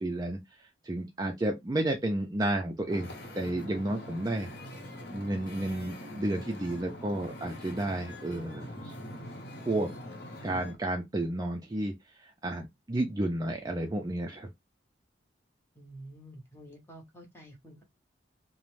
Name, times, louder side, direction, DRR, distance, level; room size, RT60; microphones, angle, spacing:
voice 1, 0.0-4.5 5.1-8.9 9.7-9.9 10.4-11.9 12.2-14.5, right 1 dB, 20° right, 0.4 m, -32 dB
Wind / Ocean, 2.9-10.8, equal, 55° left, 0.7 m, -44 dB
voice 2, 15.8-17.8, right 1 dB, 15° left, 0.7 m, -49 dB
2.6 x 2.0 x 3.1 m
head